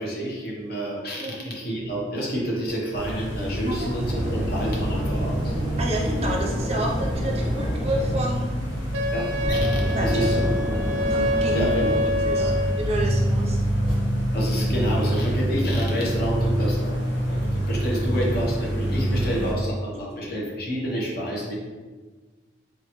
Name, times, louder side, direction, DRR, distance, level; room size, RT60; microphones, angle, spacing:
voice 1, 0.0-5.5 9.1-9.7 10.0-10.5 11.5-12.5 14.3-21.5, equal, 55° left, -3 dB, 1.0 m, -29 dB
sound 1, 2.9-19.5, equal, 80° left, 1.1 m, -26 dB
sound 2, 3.6-13.9, equal, 5° right, 1.3 m, -31 dB
voice 2, 5.8-8.7 9.9-10.3 11.1-11.7 12.0-13.6 20.1-20.2, right 1 dB, 35° right, -1 dB, 0.5 m, -30 dB
Wind instrument woodwind instrument, 8.9-13.1, left 1 dB, 85° right, 0.4 m, -26 dB
3.7 x 2.9 x 3.0 m, 1.3 s
head